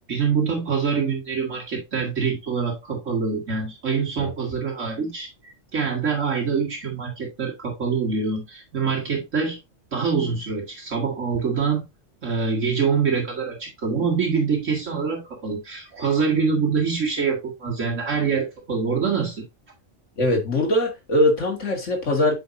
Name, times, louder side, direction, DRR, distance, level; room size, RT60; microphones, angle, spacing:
voice 1, 0.1-5.3 5.7-9.6 9.9-11.8 12.2-19.5, right 5 dB, 70° right, 2.4 m, -25 dB
voice 2, 20.2-22.3, left 1 dB, 65° left, 2.5 m, -21 dB
8.4 x 5.7 x 2.7 m
omnidirectional pair, 1.3 m